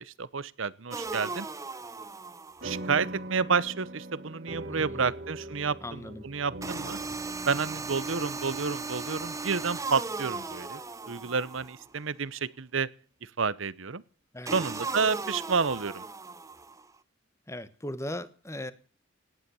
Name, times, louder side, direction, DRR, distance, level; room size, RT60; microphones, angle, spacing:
voice 1, 0.0-1.5 2.6-7.0 7.5-10.8 11.1-12.9 13.2-14.0 14.5-16.0, right 5 dB, 75° right, 19 dB, 0.9 m, -30 dB
sound 1, 0.9-2.9 6.6-11.9 14.5-16.9, right 3 dB, 15° right, 0.8 m, -37 dB
sound 2, 2.6-11.4, right 1 dB, 55° right, 2.2 m, -43 dB
voice 2, 4.7-5.1 5.8-6.2 14.3-14.6 17.5-18.7, left 1 dB, 15° left, 14 dB, 1.2 m, -38 dB
18.0 x 11.0 x 7.0 m, 0.40 s
head